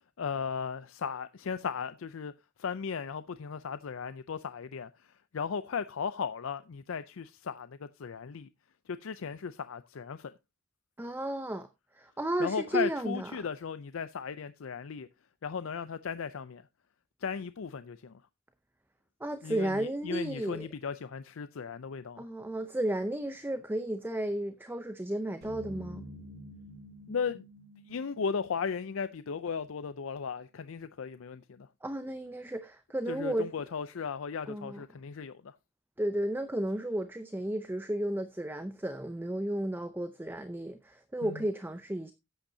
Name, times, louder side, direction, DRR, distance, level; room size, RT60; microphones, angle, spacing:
voice 1, 0.2-2.3 2.6-8.5 8.9-10.3 12.4-15.1 15.4-16.7 17.2-18.2 19.4-22.3 27.1-27.4 27.9-31.7 33.1-35.5 41.2-41.4, left 6 dB, 70° left, 0.5 m, -36 dB
voice 2, 11.0-11.7 12.0-13.3 19.2-20.7 22.2-26.0 31.8-33.5 34.5-34.8 36.0-42.1, right 1 dB, 10° right, 0.6 m, -33 dB
sound 1, 25.4-29.7, left 1 dB, 55° right, 4.4 m, -49 dB
13.0 x 8.8 x 2.7 m
head